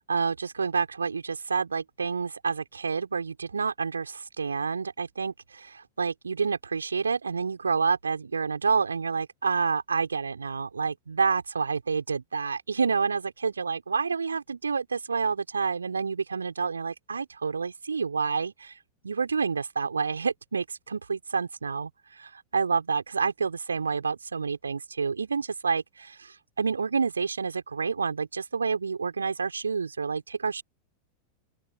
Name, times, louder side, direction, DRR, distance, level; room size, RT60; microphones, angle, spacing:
voice 1, 0.1-18.7 19.0-30.6, right 5 dB, 75° right, 4.3 m, -29 dB
open air
figure-of-eight pair, 90°, 0 cm